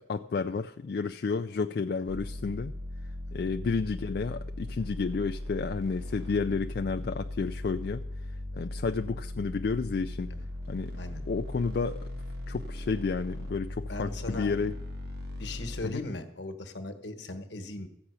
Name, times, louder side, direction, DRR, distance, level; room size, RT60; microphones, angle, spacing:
voice 1, 0.0-2.7 3.3-8.0 8.6-10.3 10.7-11.0 11.3-12.1 12.5-14.8 15.8-16.1, left 4 dB, 55° left, 7 dB, 0.3 m, -31 dB
sound 1, 2.1-15.8, left 1 dB, 60° right, 1.7 m, -38 dB
voice 2, 13.9-14.5 15.4-17.9, left 2 dB, 75° left, 7 dB, 1.3 m, -38 dB
14.5 x 5.8 x 8.2 m, 0.85 s
head